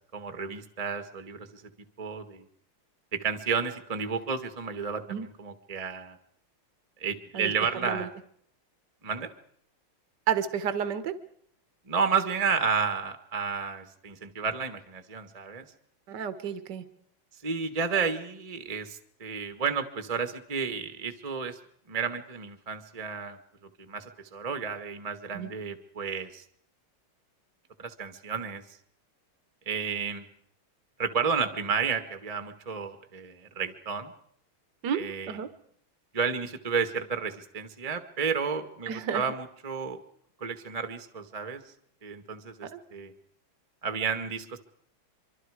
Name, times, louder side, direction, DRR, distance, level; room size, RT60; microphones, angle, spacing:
voice 1, 0.1-1.6 2.0-2.4 3.1-6.2 7.0-8.1 9.0-9.3 11.9-15.6 17.4-21.6 21.9-23.4 23.8-26.4 27.8-28.6 29.6-30.2 31.0-34.1 34.9-35.4 36.1-40.0 40.4-41.6 42.0-43.1 43.8-44.6, right 5 dB, 20° right, 9 dB, 1.4 m, -31 dB
voice 2, 10.3-11.1 16.1-16.8 25.3-25.5 34.8-35.5 38.9-39.2 42.7-42.8, right 8 dB, 60° right, 12 dB, 1.8 m, -31 dB
25.0 x 25.0 x 4.9 m, 0.64 s
omnidirectional pair, 2.2 m